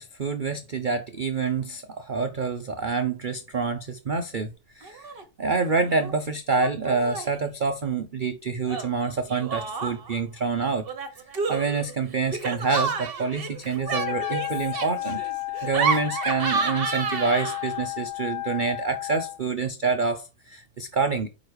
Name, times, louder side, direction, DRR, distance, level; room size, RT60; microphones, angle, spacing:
voice 1, 0.0-4.5 4.8-5.1 5.4-10.9 11.5-15.2 15.6-21.3, right 4 dB, 75° right, 0.4 m, -27 dB
Laughter, 4.8-5.2 5.5-6.1 6.5-7.4 8.7-10.2 10.9-17.8, right 5 dB, 40° right, 1.0 m, -31 dB
Wind instrument woodwind instrument, 13.8-19.4, left 19 dB, 70° left, 1.1 m, -33 dB
5.0 x 4.9 x 4.6 m
omnidirectional pair, 1.8 m